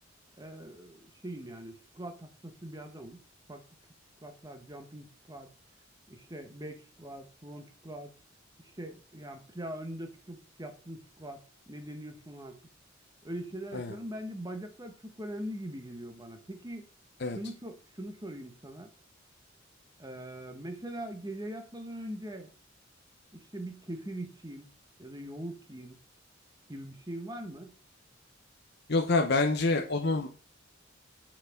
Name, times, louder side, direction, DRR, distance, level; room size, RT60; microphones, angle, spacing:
voice 1, 0.4-3.2 3.5-3.6 4.2-5.5 6.1-8.1 8.6-11.4 11.7-12.6 13.2-16.8 17.3-18.9 20.0-22.5 23.3-24.7 25.0-26.0 26.7-27.7, right 1 dB, 20° right, 1.4 m, -42 dB
voice 2, 28.9-30.3, left 3 dB, 55° left, 0.9 m, -27 dB
6.9 x 5.9 x 5.9 m
head